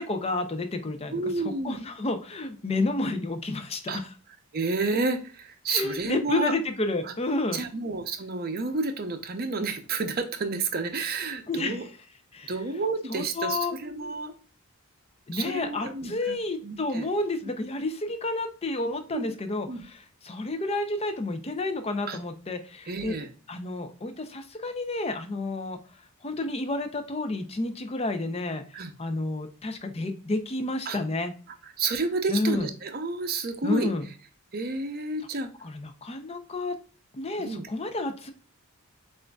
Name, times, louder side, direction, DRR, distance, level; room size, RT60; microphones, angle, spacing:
voice 1, 0.0-4.1 5.7-7.6 11.5-11.9 12.3-12.5 13.1-13.8 15.3-23.2 23.5-25.8 26.2-31.3 32.3-32.7 33.6-34.0 35.6-36.8 37.1-38.3, left 2 dB, 25° left, 7 dB, 0.4 m, -30 dB
voice 2, 1.1-1.8 3.9-4.0 4.5-6.5 7.1-7.2 7.5-11.8 12.5-14.3 15.3-16.4 16.6-17.1 17.5-17.6 19.1-19.3 19.7-19.8 22.1-22.2 22.9-23.3 28.7-28.9 30.9-31.0 31.8-33.9 34.5-35.5 37.4-37.7, right 3 dB, 40° right, 7 dB, 0.6 m, -30 dB
6.1 x 2.5 x 2.2 m, 0.39 s
head